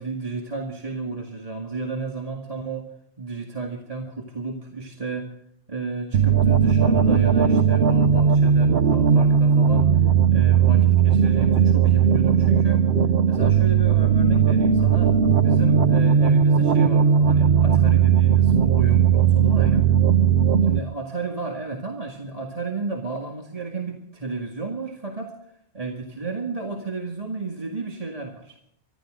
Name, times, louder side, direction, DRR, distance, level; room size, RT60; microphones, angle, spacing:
voice 1, 0.0-2.9 3.2-5.3 5.7-9.9 10.3-12.9 13.3-19.8 20.7-25.3 25.7-28.6, right 3 dB, 35° right, 1 dB, 2.1 m, -32 dB
sound 1, 6.1-20.8, right 7 dB, 65° right, 1.0 m, -18 dB
25.0 x 12.5 x 3.8 m, 0.72 s
omnidirectional pair, 1.2 m